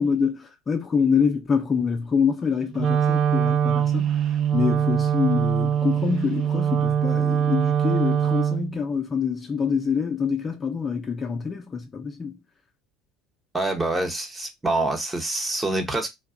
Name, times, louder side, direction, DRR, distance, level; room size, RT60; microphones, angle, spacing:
voice 1, 0.0-4.2 4.5-12.4, left 6 dB, 30° left, 0.5 m, -25 dB
Wind instrument woodwind instrument, 2.7-8.8, right 9 dB, 50° right, 0.5 m, -22 dB
voice 2, 13.5-16.1, right 2 dB, 15° right, 0.8 m, -26 dB
2.6 x 2.2 x 2.4 m
hypercardioid pair, 75°, 0 cm